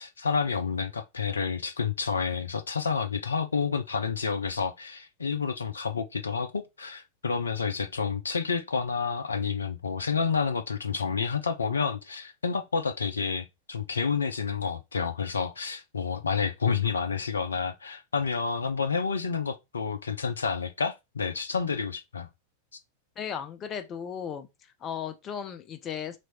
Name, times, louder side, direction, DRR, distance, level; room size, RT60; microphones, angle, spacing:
voice 1, 0.0-22.3, left 5 dB, 75° left, 0.4 m, -29 dB
voice 2, 23.2-24.5 24.8-26.2, left 8 dB, 30° left, 0.6 m, -35 dB
3.1 x 2.5 x 4.2 m
figure-of-eight pair, 90°, 0 cm